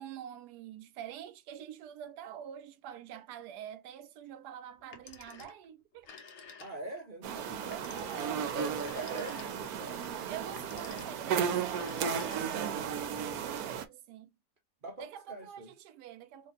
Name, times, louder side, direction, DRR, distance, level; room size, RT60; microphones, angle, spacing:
voice 1, 0.0-6.1 7.7-8.6 8.9-9.5 10.3-14.3 15.0-16.5, right 9 dB, 90° right, 1.2 m, -46 dB
Telephone, 4.8-5.7 6.0-7.0 7.7-9.8 10.4-11.3 11.7-12.7, left 5 dB, 55° left, 1.0 m, -52 dB
voice 2, 6.6-10.0 10.7-11.0 14.8-15.7, right 1 dB, 50° right, 0.6 m, -44 dB
sound 1, 7.2-13.9, right 7 dB, 75° right, 1.1 m, -34 dB
2.9 x 2.7 x 4.0 m
omnidirectional pair, 1.7 m